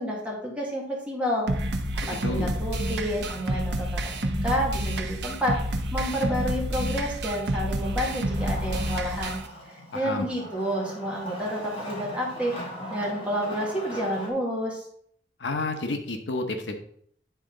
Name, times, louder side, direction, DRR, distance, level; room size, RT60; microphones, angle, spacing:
voice 1, 0.0-1.7 2.1-9.4 9.7-12.6 12.9-14.8, equal, 5° right, -3 dB, 1.7 m, -30 dB
sound 1, 1.5-9.5, right 1 dB, 70° right, 0.8 m, -29 dB
Wood, 7.8-14.3, equal, 30° left, 1.8 m, -40 dB
voice 2, 9.9-10.3 15.4-16.8, left 2 dB, 75° left, 5 dB, 0.8 m, -30 dB
9.4 x 4.0 x 3.8 m, 0.66 s
head